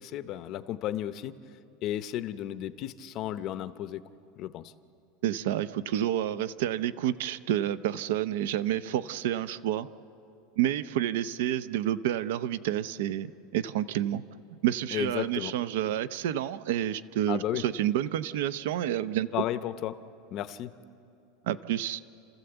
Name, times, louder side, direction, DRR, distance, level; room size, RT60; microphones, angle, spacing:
voice 1, 0.0-1.3 1.8-4.0 4.4-4.7 14.9-15.5 17.3-17.6 19.3-20.0 20.3-20.7, left 12 dB, 35° left, 12 dB, 0.7 m, -33 dB
voice 2, 5.2-9.9 10.6-14.2 14.6-19.3 21.4-22.0, right 11 dB, 70° right, 14 dB, 0.7 m, -29 dB
29.5 x 14.5 x 8.0 m, 2.6 s
supercardioid pair, 170°, 0 cm